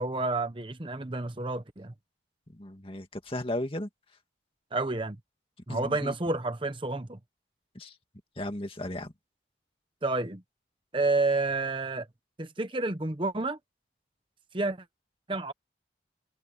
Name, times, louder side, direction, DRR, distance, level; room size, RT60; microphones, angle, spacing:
voice 1, 0.0-1.9 4.7-5.2 5.7-7.2 10.0-10.4 10.9-12.1 12.4-13.6 14.5-14.8 15.3-15.5, right 2 dB, 30° right, 1.0 m, -29 dB
voice 2, 2.6-3.9 5.7-6.1 7.8-7.9 8.4-9.1, left 1 dB, 30° left, 2.3 m, -35 dB
head